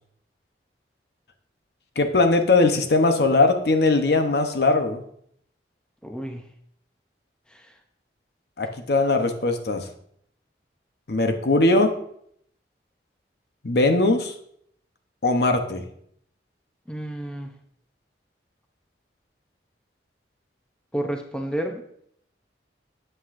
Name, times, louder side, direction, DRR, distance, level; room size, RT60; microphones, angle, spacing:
voice 1, 2.0-5.0 8.6-9.9 11.1-11.9 13.6-14.3 15.2-15.8, left 2 dB, 65° left, 6 dB, 0.8 m, -20 dB
voice 2, 6.0-6.5 7.5-7.8 16.9-17.5 20.9-21.8, right 1 dB, 5° left, 3 dB, 0.6 m, -31 dB
8.7 x 7.7 x 2.5 m, 0.68 s
head